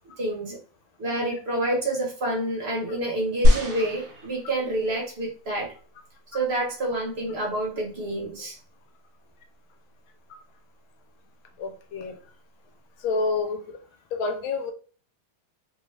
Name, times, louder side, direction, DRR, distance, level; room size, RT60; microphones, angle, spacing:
voice 1, 0.2-0.6 1.0-5.7 6.3-8.6, right 1 dB, 40° right, -2 dB, 1.0 m, -28 dB
sound 1, 3.4-4.9 5.7-5.8, left 1 dB, 70° right, 1.7 m, -22 dB
voice 2, 11.6-12.2 13.0-13.8 14.1-14.7, left 3 dB, 80° left, 4 dB, 1.4 m, -28 dB
3.8 x 2.3 x 3.1 m, 0.39 s
omnidirectional pair, 2.3 m